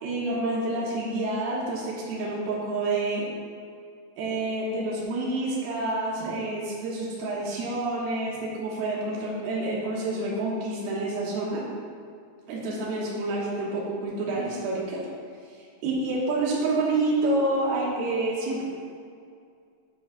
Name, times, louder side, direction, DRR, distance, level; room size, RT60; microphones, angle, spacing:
voice 1, 0.0-3.2 4.2-11.6 12.5-15.0 15.8-18.6, right 2 dB, 70° right, -4 dB, 3.0 m, -28 dB
10.5 x 7.1 x 2.3 m, 2.3 s
omnidirectional pair, 4.9 m